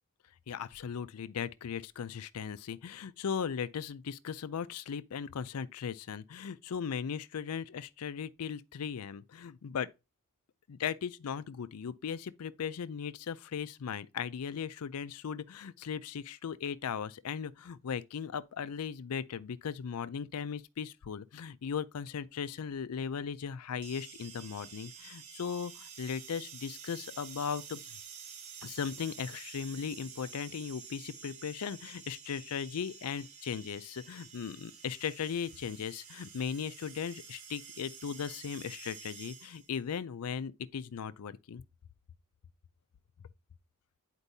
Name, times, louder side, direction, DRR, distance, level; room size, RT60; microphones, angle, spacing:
voice 1, 0.5-9.9 10.7-28.0 28.6-41.6, left 7 dB, 80° left, 0.4 m, -38 dB
sound 1, 23.8-39.8, right 7 dB, 75° right, 1.0 m, -50 dB
9.8 x 4.5 x 2.7 m
head